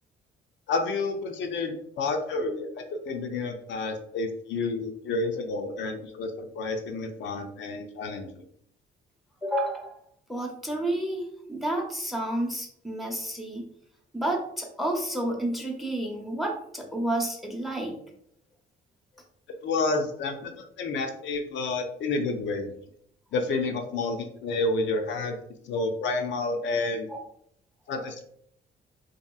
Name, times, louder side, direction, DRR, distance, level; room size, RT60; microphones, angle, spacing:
voice 1, 0.7-8.3 19.6-22.7 23.3-25.4 25.7-27.1 27.9-28.2, left 3 dB, 70° left, 4 dB, 0.4 m, -30 dB
voice 2, 9.4-10.0 10.3-13.7 14.1-18.0 27.1-27.2, right 1 dB, ahead, 2 dB, 0.6 m, -30 dB
2.8 x 2.5 x 2.3 m, 0.69 s
cardioid pair, 90°, 20 cm